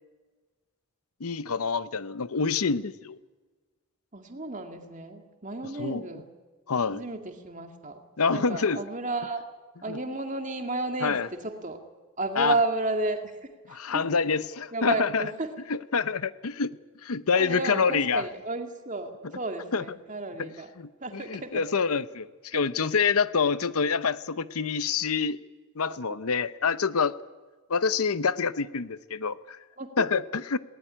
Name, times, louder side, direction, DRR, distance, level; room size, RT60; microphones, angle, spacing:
voice 1, 1.2-3.2 5.8-6.0 6.7-7.0 8.2-8.8 9.9-10.0 11.0-11.3 12.4-12.6 13.7-15.2 15.7-16.7 17.0-18.2 19.7-19.8 20.8-25.4 25.8-27.2 27.7-29.6 30.0-30.6, left 5 dB, 80° left, 15 dB, 0.8 m, -26 dB
voice 2, 4.1-6.3 6.9-8.0 8.3-9.4 9.8-11.8 12.2-14.1 14.7-15.5 17.3-20.7 21.0-21.7 25.9-26.0 29.8-30.0, right 2 dB, 35° right, 5 dB, 2.2 m, -32 dB
19.5 x 18.5 x 9.8 m, 1.3 s
head